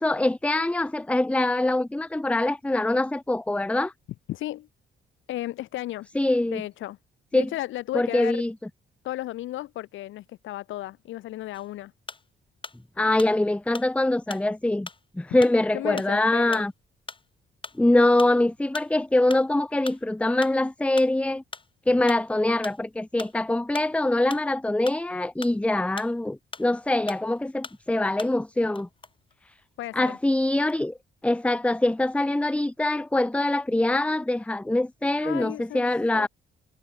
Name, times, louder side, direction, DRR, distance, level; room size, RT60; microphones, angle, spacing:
voice 1, 0.0-3.9 6.1-6.6 7.3-7.5 7.9-8.5 13.0-14.9 15.1-16.7 17.8-21.4 21.9-28.9 29.5-29.6 29.9-31.0 31.2-36.3, left 2 dB, 5° left, 0.8 m, -24 dB
voice 2, 4.3-4.7 5.3-6.1 6.5-7.0 7.3-8.4 9.0-11.9 15.7-16.6 29.8-30.2 35.2-35.9 36.1-36.3, left 15 dB, 75° left, 0.7 m, -34 dB
sound 1, 11.5-12.8 13.2-26.8 27.1-28.5 28.8-30.0 30.4-31.0, left 4 dB, 25° left, 2.3 m, -42 dB
cardioid pair, 90°, 20 cm